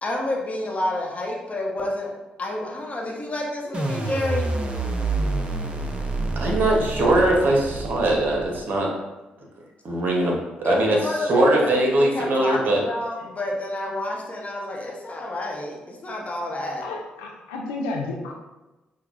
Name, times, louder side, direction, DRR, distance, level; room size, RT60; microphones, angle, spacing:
voice 1, 0.0-4.5 10.6-16.8, left 1 dB, 35° left, -1 dB, 0.9 m, -29 dB
sound 1, 3.7-8.8, right 2 dB, 30° right, 0.7 m, -27 dB
voice 2, 6.4-8.9 9.8-11.0 11.3-12.8, right 1 dB, 55° right, -1 dB, 0.9 m, -21 dB
voice 3, 16.8-18.3, left 2 dB, 85° left, 0 dB, 0.4 m, -31 dB
5.6 x 2.2 x 2.4 m, 1.1 s
hypercardioid pair, 45°, 4 cm